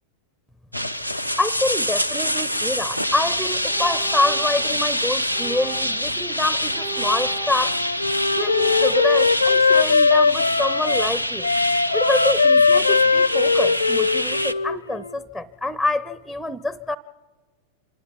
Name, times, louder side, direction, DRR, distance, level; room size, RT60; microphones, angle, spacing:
sound 1, 0.7-14.5, equal, 90° right, 0.7 m, -25 dB
voice 1, 1.4-7.8 8.3-11.5 11.9-17.0, left 2 dB, 5° right, 17 dB, 0.6 m, -26 dB
sound 2, 2.8-3.1 3.7-4.7 5.3-6.1 6.7-7.9 8.3-8.9, right 3 dB, 45° right, 1.4 m, -36 dB
Wind instrument woodwind instrument, 7.5-11.1 11.4-15.2, left 4 dB, 80° left, 0.5 m, -20 dB
26.0 x 19.5 x 5.3 m, 1.4 s
figure-of-eight pair, 90°, 0 cm